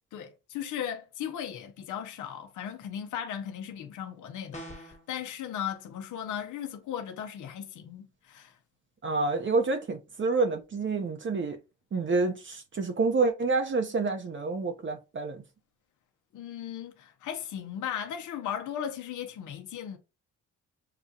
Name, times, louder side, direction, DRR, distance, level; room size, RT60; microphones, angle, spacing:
voice 1, 0.1-8.6 16.3-20.0, left 9 dB, 70° left, 0.7 m, -37 dB
sound 1, 4.5-5.1, equal, 20° left, 1.2 m, -42 dB
voice 2, 9.0-11.6 11.9-15.4, right 3 dB, 40° right, 0.8 m, -28 dB
6.7 x 2.3 x 2.7 m
cardioid pair, 75°, 31 cm